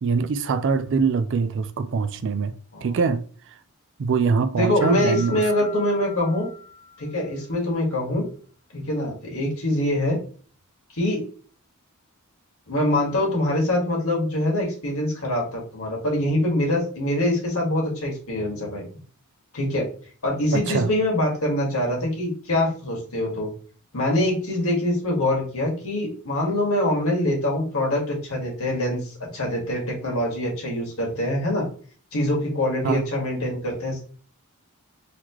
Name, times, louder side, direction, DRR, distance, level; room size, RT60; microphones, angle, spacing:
voice 1, 0.0-2.5 2.8-3.2 4.0-5.4 20.5-20.9 32.8-33.0, right 5 dB, 55° right, 0.4 m, -23 dB
voice 2, 4.6-6.5 7.0-8.2 8.7-10.2 10.9-11.2 12.7-18.8 19.5-19.9 20.2-23.5 23.9-31.6 32.1-34.0, left 1 dB, 65° left, 1.8 m, -24 dB
sound 1, 4.8-7.5, left 5 dB, 35° left, 1.3 m, -39 dB
4.1 x 3.0 x 3.0 m
head